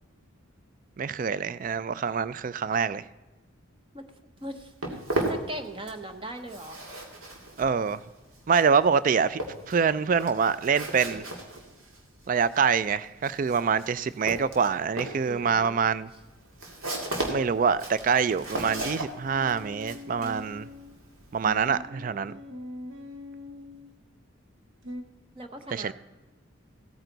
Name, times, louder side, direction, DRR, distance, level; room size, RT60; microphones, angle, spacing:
voice 1, 1.0-3.0 7.6-8.0 8.5-11.2 12.3-16.1 17.3-20.7 21.3-22.3 25.7-25.9, right 6 dB, 40° right, 16 dB, 0.3 m, -25 dB
voice 2, 4.4-6.8 15.3-15.8 25.4-25.9, right 1 dB, 25° right, 7 dB, 0.8 m, -39 dB
Walk footsteps, 4.4-6.1 6.4-21.8, right 1 dB, 85° right, 2.3 m, -36 dB
sound 1, 18.5-21.0 21.4-23.9 24.8-25.0, left 2 dB, 65° right, 1.1 m, -42 dB
16.0 x 9.0 x 4.0 m, 1.2 s
head